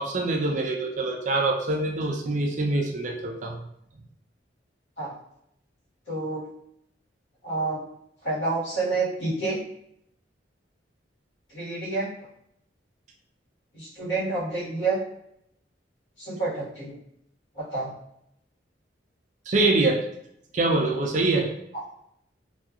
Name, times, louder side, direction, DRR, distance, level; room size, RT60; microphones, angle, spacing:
voice 1, 0.0-3.6 19.5-20.0 20.5-21.5, right 2 dB, 40° right, 1 dB, 0.4 m, -24 dB
voice 2, 6.1-6.4 7.4-7.8 8.2-9.6 11.5-12.1 13.7-15.0 16.2-17.0 17.5-17.9 21.7-21.8, right 3 dB, 80° left, -8 dB, 1.4 m, -28 dB
2.7 x 2.3 x 2.3 m, 0.75 s
head